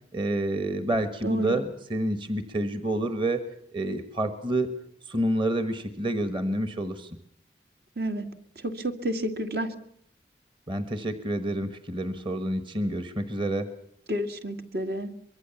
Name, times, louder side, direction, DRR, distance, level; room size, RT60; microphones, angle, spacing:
voice 1, 0.1-3.4 3.7-4.7 5.1-7.2 10.7-13.7, right 1 dB, 25° right, 10 dB, 1.3 m, -28 dB
voice 2, 1.2-1.6 8.0-8.3 8.6-9.7 14.1-15.1, equal, 60° right, 7 dB, 2.0 m, -30 dB
24.0 x 22.5 x 7.1 m, 0.71 s
head